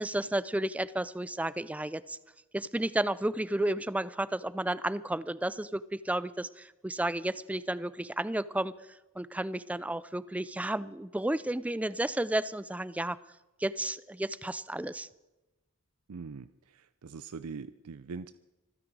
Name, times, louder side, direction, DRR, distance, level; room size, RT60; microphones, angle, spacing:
voice 1, 0.0-2.2 2.5-8.7 9.2-13.2 13.6-15.1, right 1 dB, 5° right, 16 dB, 0.4 m, -32 dB
voice 2, 16.1-18.3, right 4 dB, 90° right, 13 dB, 0.5 m, -42 dB
26.0 x 9.9 x 4.7 m, 1.0 s
head